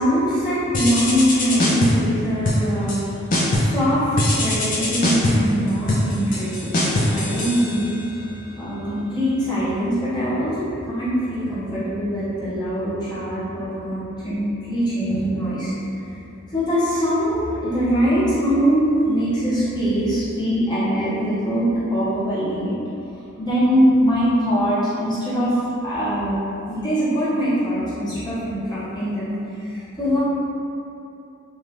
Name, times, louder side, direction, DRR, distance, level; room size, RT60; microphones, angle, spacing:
voice 1, 0.0-3.2 3.5-15.7 16.5-22.8 23.4-26.3 26.7-30.2, equal, 20° left, -13 dB, 0.8 m, -22 dB
sound 1, 0.7-2.1 2.4-3.0 3.3-3.8 4.2-8.2, left 1 dB, 40° left, 0.4 m, -22 dB
2.8 x 2.4 x 3.3 m, 2.7 s
head